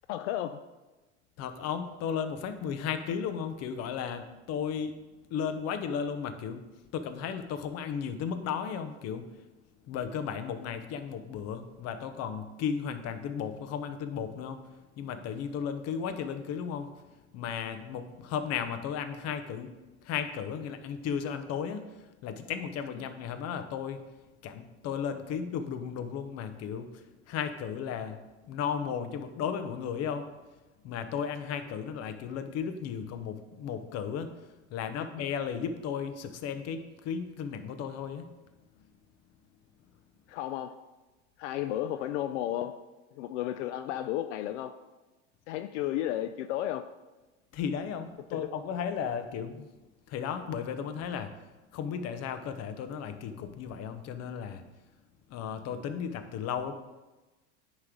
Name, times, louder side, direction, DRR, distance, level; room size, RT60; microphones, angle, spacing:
voice 1, 0.1-0.6 35.0-35.1 40.3-40.8 41.4-42.8 43.1-44.8 45.5-46.9 48.3-48.5, left 12 dB, 80° left, 9 dB, 0.5 m, -33 dB
voice 2, 1.4-5.0 5.3-9.4 9.8-16.9 17.3-19.7 20.0-24.0 24.4-28.2 28.5-30.2 30.8-38.3 47.5-49.7 50.1-51.3 51.7-54.6 55.3-56.7, left 7 dB, 45° left, 9 dB, 0.8 m, -35 dB
9.7 x 3.2 x 5.0 m, 1.1 s
supercardioid pair, 105°, 36 cm